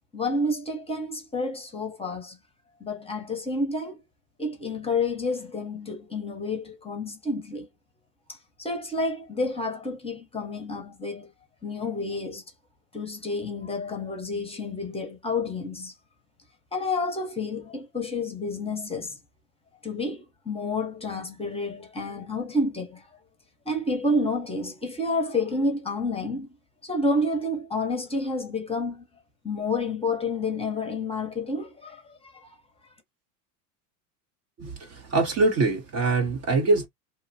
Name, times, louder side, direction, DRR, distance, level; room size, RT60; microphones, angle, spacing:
voice 1, 0.1-2.4 2.8-4.0 4.4-7.7 8.3-11.3 11.6-12.4 12.9-15.9 16.7-19.2 19.8-23.1 23.7-26.5 26.8-29.0 29.4-32.5, left 2 dB, 10° left, 0.7 m, -29 dB
voice 2, 34.6-36.9, right 3 dB, 30° right, 0.6 m, -24 dB
2.8 x 2.1 x 2.6 m
hypercardioid pair, 95°, 49 cm